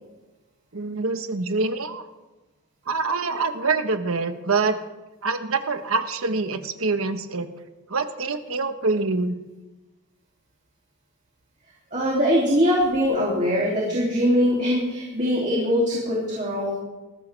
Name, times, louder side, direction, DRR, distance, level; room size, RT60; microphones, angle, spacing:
voice 1, 0.7-2.0 2.9-4.8 5.2-7.5 7.9-9.4, right 3 dB, 75° right, 8 dB, 1.3 m, -25 dB
voice 2, 11.9-16.8, equal, 35° right, -4 dB, 2.9 m, -22 dB
20.0 x 14.5 x 3.4 m, 1.1 s
head